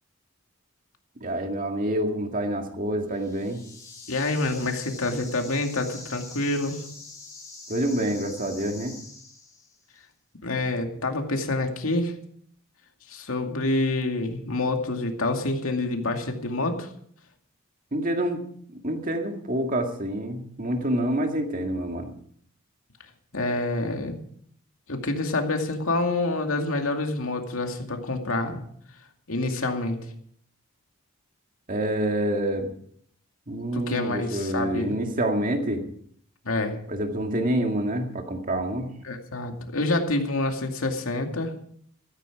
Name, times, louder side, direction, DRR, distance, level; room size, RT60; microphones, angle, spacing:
voice 1, 1.2-3.6 7.7-9.0 17.9-18.4 18.8-22.1 31.7-32.7 33.5-35.8 36.9-38.9, right 1 dB, 40° right, 4 dB, 2.1 m, -27 dB
sound 1, 3.1-9.8, left 3 dB, 15° left, 3.5 m, -44 dB
voice 2, 4.1-6.8 10.4-12.1 13.1-16.9 23.3-24.2 24.9-28.6 29.3-30.0 33.7-35.0 36.4-36.8 39.0-41.5, left 2 dB, 80° left, 4 dB, 2.4 m, -27 dB
14.0 x 13.5 x 4.9 m, 0.63 s
head